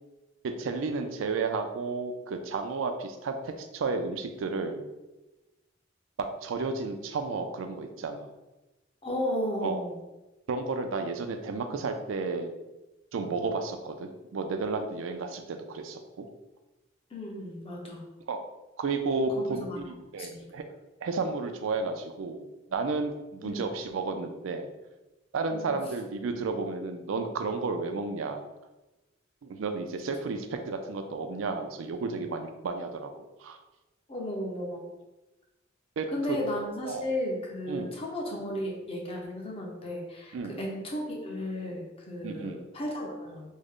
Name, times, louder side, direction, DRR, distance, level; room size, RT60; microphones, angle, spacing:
voice 1, 0.4-4.9 6.4-8.3 9.6-9.8 10.5-12.5 13.1-16.3 18.3-18.4 18.8-20.6 21.0-24.7 25.3-28.4 29.4-33.6 36.0-36.4 36.9-37.1 37.7-38.0 40.3-40.6 42.2-42.6, right 4 dB, 85° right, 6 dB, 0.4 m, -32 dB
voice 2, 9.0-10.0 17.1-18.0 19.4-19.9 20.2-20.5 23.4-23.6 25.5-25.8 34.1-34.9 36.1-43.4, left 1 dB, 30° left, -1 dB, 0.7 m, -34 dB
3.6 x 2.1 x 3.5 m, 1.0 s
head